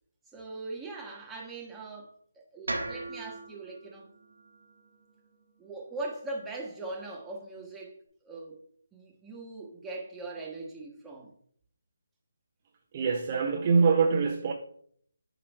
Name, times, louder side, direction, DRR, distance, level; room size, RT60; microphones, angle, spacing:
voice 1, 0.3-4.1 5.6-7.9 8.2-8.6 8.9-11.3, right 2 dB, 5° right, 1.3 m, -40 dB
sound 1, 2.7-6.8, right 2 dB, 80° right, 1.4 m, -41 dB
voice 2, 12.9-14.5, right 5 dB, 30° right, 0.6 m, -24 dB
8.6 x 3.0 x 4.5 m
figure-of-eight pair, 155°, 0 cm